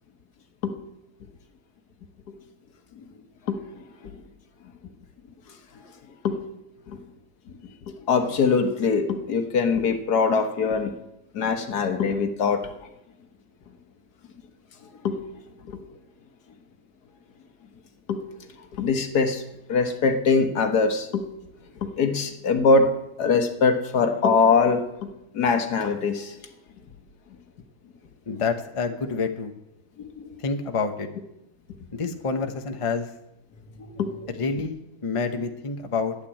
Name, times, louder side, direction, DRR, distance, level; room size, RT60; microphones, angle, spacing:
voice 1, 7.9-10.9 11.3-12.7 15.0-15.2 15.7-15.8 18.1-18.2 18.7-19.4 19.7-21.2 21.8-22.9 23.2-26.3 30.0-30.2 33.8-34.3, left 4 dB, 80° left, 6 dB, 1.8 m, -23 dB
voice 2, 28.3-29.5 30.4-31.1 31.9-33.1 34.4-36.2, left 4 dB, 25° left, 6 dB, 0.9 m, -28 dB
12.0 x 8.4 x 8.6 m, 0.85 s
omnidirectional pair, 1.7 m